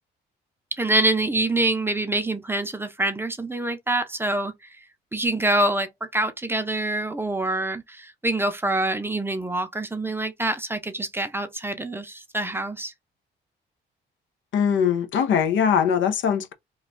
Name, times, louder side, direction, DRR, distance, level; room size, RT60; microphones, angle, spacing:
voice 1, 0.7-4.5 5.1-12.9, right 2 dB, 10° right, 0.6 m, -25 dB
voice 2, 14.5-16.5, left 7 dB, 75° left, 0.7 m, -21 dB
3.1 x 2.2 x 3.8 m
cardioid pair, 90°, 20 cm